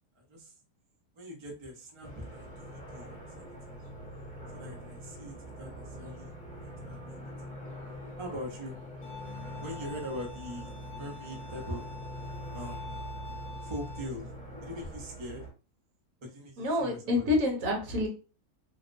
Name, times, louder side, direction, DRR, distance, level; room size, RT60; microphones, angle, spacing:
voice 1, 0.1-0.5 1.2-3.9 4.5-6.3 6.6-7.2 8.2-8.8 9.6-11.8 12.5-12.9 13.6-14.3 14.6-15.4 16.2-17.2, equal, 40° right, -1 dB, 0.4 m, -42 dB
sound 1, 2.0-15.5, equal, 5° left, 0.7 m, -43 dB
Bowed string instrument, 9.0-14.1, left 4 dB, 70° left, 0.8 m, -46 dB
voice 2, 16.6-18.1, left 2 dB, 70° right, 1 dB, 1.1 m, -28 dB
2.7 x 2.0 x 2.5 m, 0.34 s
omnidirectional pair, 1.6 m